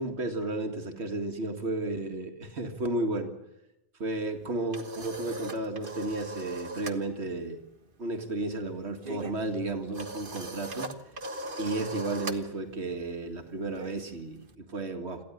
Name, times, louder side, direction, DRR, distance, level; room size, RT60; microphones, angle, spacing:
voice 1, 0.0-3.3 4.0-7.6 8.0-10.9 11.6-15.2, right 2 dB, 70° right, 5 dB, 2.3 m, -33 dB
sound 1, 4.3-7.0 7.3-7.6 7.9-14.5, right 1 dB, 50° right, 1.7 m, -40 dB
26.5 x 14.5 x 9.9 m, 0.94 s
omnidirectional pair, 1.2 m